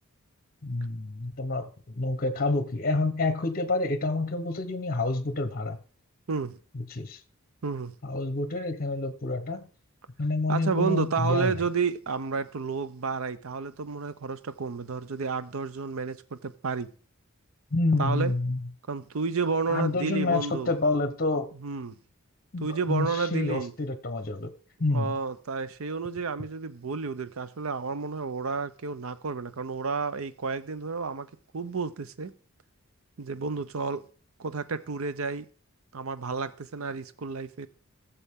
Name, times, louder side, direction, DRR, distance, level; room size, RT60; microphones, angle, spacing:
voice 1, 0.6-5.8 6.7-7.2 8.0-9.7 10.2-11.6 17.7-18.6 19.7-21.5 22.5-24.5 24.8-25.1, left 2 dB, 40° left, 0.8 m, -28 dB
voice 2, 7.6-7.9 10.5-16.9 18.0-18.3 18.9-20.7 21.6-22.0 22.6-23.7 24.9-32.3 33.2-34.0 34.4-35.5 35.9-37.7, right 5 dB, 65° right, 0.6 m, -31 dB
15.5 x 7.0 x 3.6 m
head